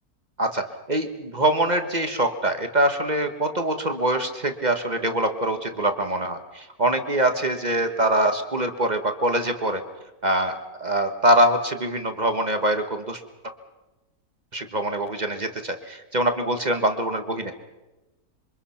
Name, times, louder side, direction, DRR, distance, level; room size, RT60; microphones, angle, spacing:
voice 1, 0.4-9.8 10.2-10.5 10.8-13.5 14.5-17.5, right 1 dB, 30° right, 7 dB, 1.5 m, -24 dB
27.0 x 24.5 x 5.8 m, 1.1 s
omnidirectional pair, 1.7 m